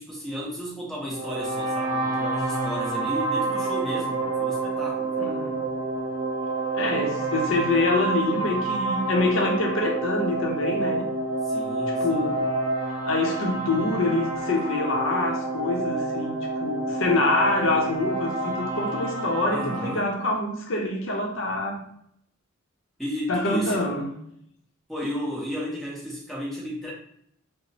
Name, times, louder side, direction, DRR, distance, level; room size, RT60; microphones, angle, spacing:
voice 1, 0.0-5.4 11.4-12.4 19.5-20.2 23.0-23.9 24.9-26.9, equal, ahead, 0.6 m, -33 dB
sound 1, 1.1-19.9, right 2 dB, 50° right, 0.8 m, -28 dB
voice 2, 5.2-5.7 6.7-11.0 11.6-11.7 12.0-12.5 12.9-21.8 23.3-24.1, left 2 dB, 60° left, 0.6 m, -26 dB
3.0 x 2.0 x 2.7 m
head